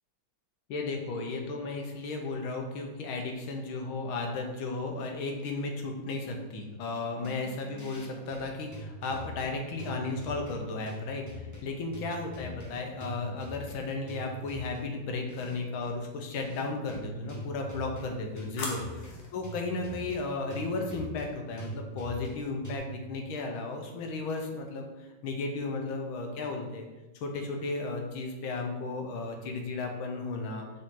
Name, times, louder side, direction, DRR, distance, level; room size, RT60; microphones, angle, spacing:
voice 1, 0.7-18.8 19.3-26.9 27.2-30.6, left 3 dB, 85° left, 3 dB, 1.7 m, -34 dB
sound 1, 7.2-22.8, equal, 15° left, 0.6 m, -43 dB
sound 2, 14.2-14.9 17.3-19.4, left 2 dB, 45° left, 1.3 m, -43 dB
6.6 x 4.1 x 3.7 m, 1.1 s
omnidirectional pair, 2.2 m